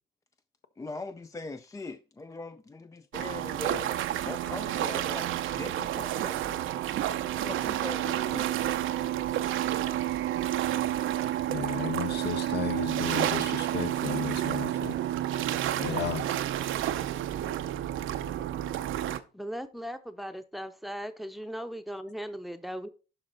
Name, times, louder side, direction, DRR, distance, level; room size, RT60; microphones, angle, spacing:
voice 1, 0.8-4.0 4.2-6.7 7.4-8.5, left 3 dB, 15° left, 0.4 m, -41 dB
sound 1, 3.1-19.2, right 12 dB, 80° right, 0.7 m, -30 dB
voice 2, 11.5-15.0 15.8-16.3, left 8 dB, 60° left, 1.0 m, -34 dB
voice 3, 19.3-22.9, equal, ahead, 0.8 m, -38 dB
11.5 x 4.0 x 4.0 m
cardioid pair, 90°, 20 cm